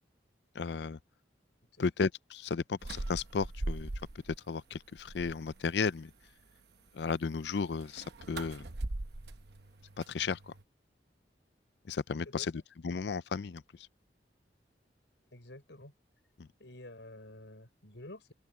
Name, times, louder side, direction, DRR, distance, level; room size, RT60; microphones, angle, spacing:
voice 1, 0.6-1.0 1.8-3.9 4.5-6.1 7.0-8.7 10.1-10.4 11.9-12.5 12.8-13.6 16.4-16.5, left 5 dB, 70° left, 0.5 m, -34 dB
voice 2, 1.7-2.1 12.2-12.6 15.3-15.9 16.6-18.3, left 1 dB, 90° left, 6.0 m, -50 dB
sound 1, 2.8-4.4 4.7-5.6 7.8-10.6, right 2 dB, 65° right, 0.9 m, -40 dB
open air
head